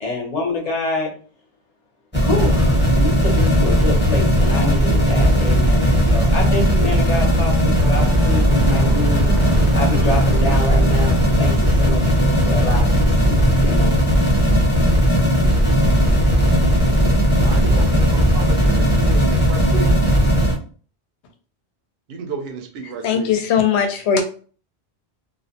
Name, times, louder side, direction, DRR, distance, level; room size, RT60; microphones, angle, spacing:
voice 1, 0.0-1.1 2.2-9.3 9.7-14.0, left 2 dB, 40° left, 0 dB, 0.7 m, -27 dB
sound 1, 2.1-20.5, equal, 10° left, 0.7 m, -16 dB
sound 2, 2.5-18.6, right 2 dB, 50° right, 0.4 m, -31 dB
sound 3, 7.8-13.7, right 2 dB, 85° right, 1.1 m, -33 dB
voice 2, 17.4-19.9 22.1-23.4, right 4 dB, 70° right, 4 dB, 0.8 m, -32 dB
voice 3, 23.0-24.2, left 7 dB, 80° left, 6 dB, 0.8 m, -19 dB
2.5 x 2.1 x 2.7 m, 0.41 s
omnidirectional pair, 1.1 m